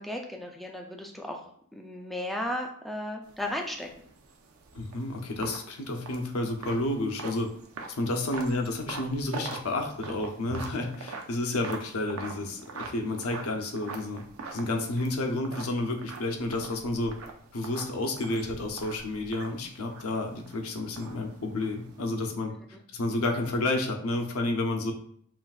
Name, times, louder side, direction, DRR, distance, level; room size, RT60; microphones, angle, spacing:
voice 1, 0.0-3.9, left 1 dB, ahead, 1 dB, 0.4 m, -35 dB
sound 1, 3.2-22.0, right 3 dB, 65° right, 0.5 m, -44 dB
voice 2, 4.7-7.5 8.0-14.2 14.5-17.1 17.5-22.5 22.9-24.9, left 2 dB, 70° left, 4 dB, 0.7 m, -30 dB
5.8 x 2.5 x 2.4 m, 0.63 s
head